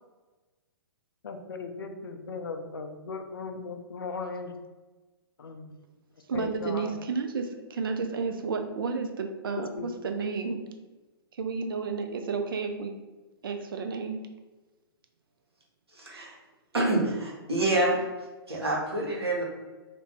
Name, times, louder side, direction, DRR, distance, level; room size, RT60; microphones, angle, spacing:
voice 1, 1.2-4.6 5.4-5.8 6.3-6.9 9.8-10.0, left 4 dB, 65° left, 6 dB, 0.4 m, -37 dB
voice 2, 6.3-10.6 11.3-12.9 13.4-14.2, right 4 dB, 60° right, 5 dB, 0.4 m, -31 dB
voice 3, 15.9-16.4 16.7-18.0 18.5-19.4, right 2 dB, 85° right, -3 dB, 0.9 m, -27 dB
2.4 x 2.1 x 3.3 m, 1.2 s
figure-of-eight pair, 120°, 13 cm